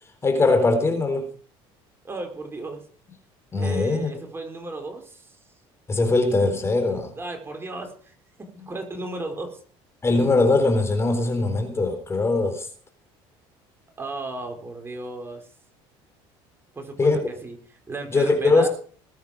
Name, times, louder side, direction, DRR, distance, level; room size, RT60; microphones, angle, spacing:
voice 1, 0.2-1.3 3.5-4.1 5.9-7.1 10.0-12.7 17.0-17.2 18.1-18.7, left 3 dB, 25° left, 4.2 m, -21 dB
voice 2, 2.0-2.8 3.6-5.4 6.9-8.1 8.4-9.6 14.0-15.5 16.7-17.6 17.9-18.7, right 2 dB, 20° right, 4.6 m, -35 dB
21.0 x 9.2 x 5.1 m
supercardioid pair, 105°, 11 cm